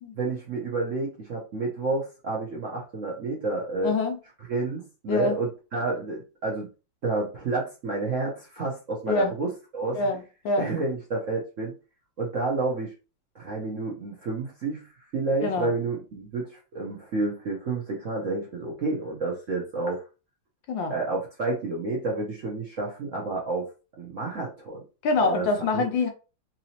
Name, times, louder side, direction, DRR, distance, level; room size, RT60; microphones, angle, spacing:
voice 1, 0.1-3.9 4.5-6.7 7.0-10.1 10.6-11.7 12.2-12.9 13.3-20.0 20.9-23.7 24.0-24.8 25.2-25.8, right 3 dB, 60° right, 0.8 m, -30 dB
voice 2, 3.8-4.2 5.1-5.4 9.1-9.3 9.9-10.7 15.4-15.7 20.7-20.9 25.0-26.1, left 3 dB, 70° left, 1.3 m, -25 dB
3.9 x 2.9 x 2.8 m
omnidirectional pair, 2.3 m